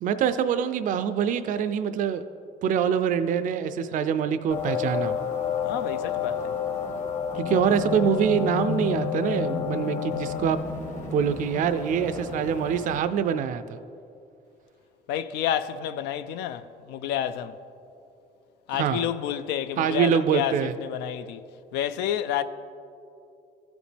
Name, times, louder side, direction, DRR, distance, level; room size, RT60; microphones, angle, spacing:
voice 1, 0.0-2.2 2.6-5.2 7.3-10.6 11.1-13.8 18.7-19.0 19.8-20.7, right 8 dB, 50° right, 0.4 m, -25 dB
sound 1, 4.5-13.0, left 6 dB, 50° left, 1.3 m, -30 dB
voice 2, 5.6-6.6 15.1-17.6 18.7-21.4 21.7-22.4, left 10 dB, 90° left, 0.4 m, -29 dB
14.5 x 5.1 x 3.3 m
cardioid pair, 110°, 17 cm